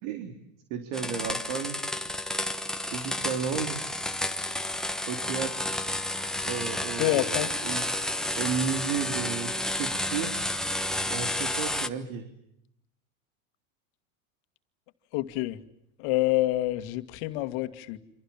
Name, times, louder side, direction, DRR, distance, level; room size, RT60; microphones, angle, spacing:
voice 1, 0.0-0.3 0.7-1.8 2.9-3.8 5.1-5.7 6.5-7.9 8.3-10.3 11.1-12.3, right 7 dB, 65° right, 7 dB, 3.8 m, -33 dB
sound 1, 0.9-11.9, left 1 dB, ahead, 1.1 m, -31 dB
voice 2, 7.0-7.5 15.1-15.6 16.0-18.0, left 17 dB, 60° left, 9 dB, 2.2 m, -27 dB
28.5 x 26.5 x 7.4 m, 0.78 s
supercardioid pair, 140°, 43 cm